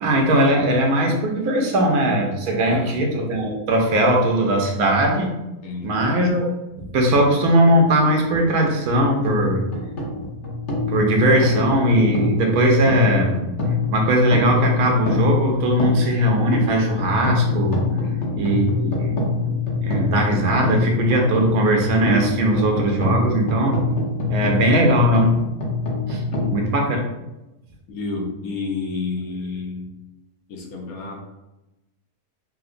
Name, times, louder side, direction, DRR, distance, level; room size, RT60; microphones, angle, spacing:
voice 1, 0.0-5.4 5.8-6.5 6.8-9.6 10.2-10.3 10.9-13.4 13.9-17.8 18.4-19.2 19.4-19.6 19.8-23.8 24.3-25.3 26.1-26.2 26.5-27.0, right 1 dB, 75° right, 1 dB, 1.2 m, -19 dB
voice 2, 2.6-3.0 5.6-6.0 18.0-18.4 24.4-24.9 26.3-26.6 27.9-29.9 30.5-31.2, left 4 dB, 75° left, 0 dB, 1.2 m, -31 dB
sound 1, 9.0-26.6, left 3 dB, 55° left, 1.1 m, -24 dB
5.6 x 2.1 x 2.5 m, 0.98 s
omnidirectional pair, 1.6 m